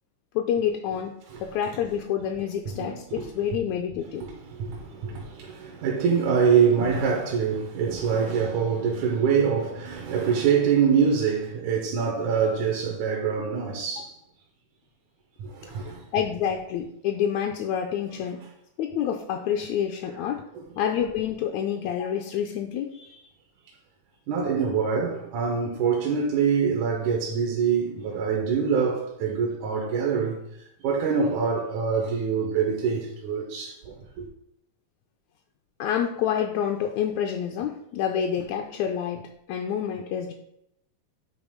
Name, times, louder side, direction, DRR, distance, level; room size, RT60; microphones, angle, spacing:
voice 1, 0.3-4.2 16.1-18.4 18.8-20.4 20.8-23.3 35.8-39.2 39.5-40.3, left 9 dB, 80° left, 1.7 m, -28 dB
voice 2, 2.7-3.2 4.2-14.1 15.6-16.0 20.6-20.7 24.3-30.4 30.8-33.9, right 6 dB, 75° right, 2.3 m, -25 dB
8.9 x 3.0 x 4.9 m
omnidirectional pair, 3.6 m